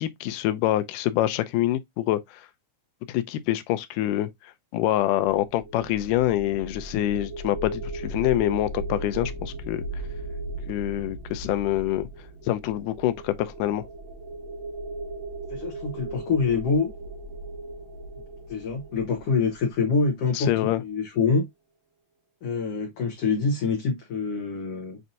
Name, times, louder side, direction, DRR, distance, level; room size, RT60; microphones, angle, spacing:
voice 1, 0.0-2.2 3.1-4.3 4.7-9.8 10.7-12.1 12.5-13.8 20.3-20.8, left 14 dB, 85° left, 2.1 m, -25 dB
sound 1, 5.2-20.3, right 2 dB, 65° right, 1.2 m, -37 dB
voice 2, 15.5-16.9 18.5-21.5 22.4-25.0, left 4 dB, 65° left, 1.6 m, -25 dB
7.4 x 2.6 x 2.6 m
omnidirectional pair, 3.7 m